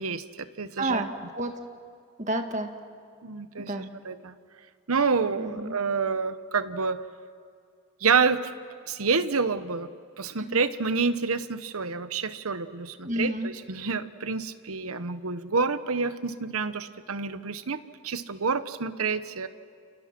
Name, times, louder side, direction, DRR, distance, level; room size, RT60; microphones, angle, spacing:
voice 1, 0.0-1.0 3.2-3.7 4.0-4.3 4.9-7.0 8.0-8.5 8.9-9.9 10.2-19.5, right 5 dB, 75° right, 12 dB, 1.0 m, -28 dB
voice 2, 0.8-1.5 2.2-2.7 3.6-3.9 5.4-5.7 10.4-10.6 13.0-13.5, right 1 dB, 35° right, 5 dB, 1.7 m, -30 dB
30.0 x 29.5 x 6.1 m, 2.3 s
head